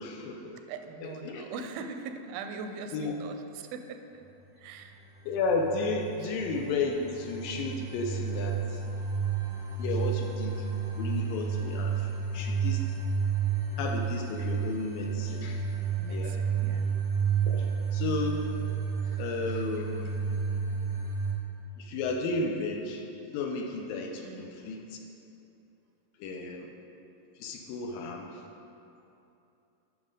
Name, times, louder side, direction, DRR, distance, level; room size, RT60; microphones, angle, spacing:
voice 1, 0.0-0.6 1.0-1.4 2.9-3.1 5.3-8.6 9.8-10.6 11.0-12.1 12.3-12.8 13.8-15.6 16.1-16.3 17.5-18.4 19.2-20.1 21.8-23.0 23.3-24.8 26.2-26.7 27.4-28.3, left 3 dB, 80° left, 2 dB, 2.2 m, -33 dB
voice 2, 0.7-4.2 4.6-5.0 6.2-6.4 16.0-16.9 24.2-24.6, right 5 dB, 85° right, 7 dB, 2.4 m, -41 dB
sound 1, 5.0-21.3, right 6 dB, 20° right, 1.0 m, -31 dB
9.5 x 6.1 x 5.2 m, 2.8 s
omnidirectional pair, 4.4 m